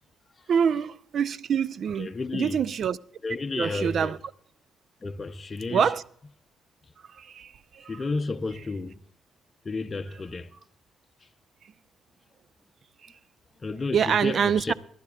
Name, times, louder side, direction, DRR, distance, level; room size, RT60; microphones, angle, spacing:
voice 1, 0.5-3.0 3.5-4.2 5.7-6.0 7.1-8.0 13.0-13.1 13.9-14.7, right 7 dB, 60° right, 0.4 m, -26 dB
voice 2, 2.0-2.6 3.2-4.1 5.0-5.9 7.9-9.0 9.6-10.5 13.6-14.7, left 3 dB, 30° left, 0.6 m, -32 dB
24.0 x 11.0 x 2.4 m
cardioid pair, 90°, 0 cm